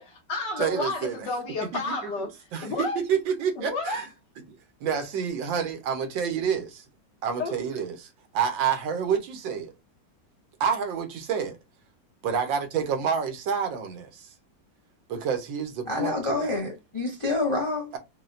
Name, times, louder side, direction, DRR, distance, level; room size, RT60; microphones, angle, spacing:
voice 1, 0.0-2.3 2.6-3.0 3.5-4.1 7.4-7.5, left 3 dB, 70° left, 1.7 m, -31 dB
voice 2, 0.6-1.3 1.9-2.0 2.5-4.0 4.8-6.8 7.2-9.7 10.6-11.6 12.2-14.3 15.1-16.5, right 7 dB, 90° right, 1.6 m, -28 dB
voice 3, 15.9-17.9, left 3 dB, 35° left, 0.4 m, -27 dB
5.4 x 2.3 x 2.4 m
omnidirectional pair, 2.0 m